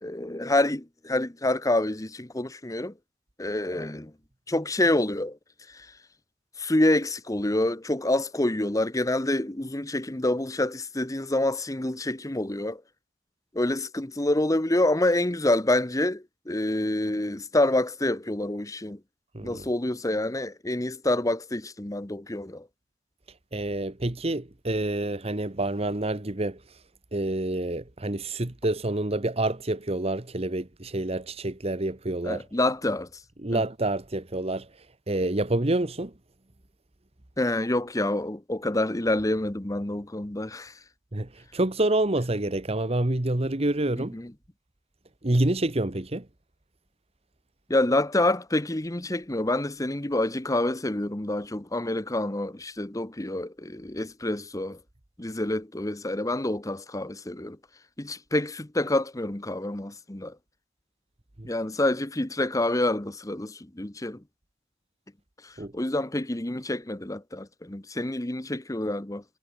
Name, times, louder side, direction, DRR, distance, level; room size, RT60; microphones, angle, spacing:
voice 1, 0.0-2.9 3.4-4.1 4.5-5.4 5.7-5.9 6.6-12.8 13.5-19.0 19.4-22.7 32.2-33.2 33.5-33.6 37.4-40.8 44.0-44.3 47.7-54.8 55.2-57.6 58.0-60.4 61.4-64.2 65.4-69.2, left 1 dB, 20° left, 1.0 m, -27 dB
voice 2, 23.5-26.8 27.1-32.4 33.4-36.1 41.1-44.1 45.2-46.3 61.4-61.5 65.6-65.7, right 1 dB, 35° right, 1.2 m, -28 dB
head